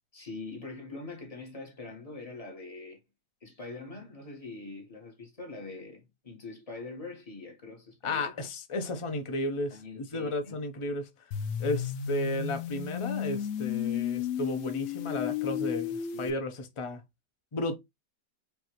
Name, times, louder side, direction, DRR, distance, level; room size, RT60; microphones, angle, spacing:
voice 1, 0.1-3.0 3.4-8.3 9.7-10.6 15.5-15.8 16.1-16.3, left 3 dB, 20° left, 1.4 m, -43 dB
voice 2, 8.0-11.1 11.6-17.0 17.5-17.8, left 1 dB, 45° left, 0.4 m, -33 dB
sound 1, 11.3-16.3, left 9 dB, 65° left, 0.8 m, -33 dB
5.2 x 2.7 x 3.0 m
omnidirectional pair, 1.8 m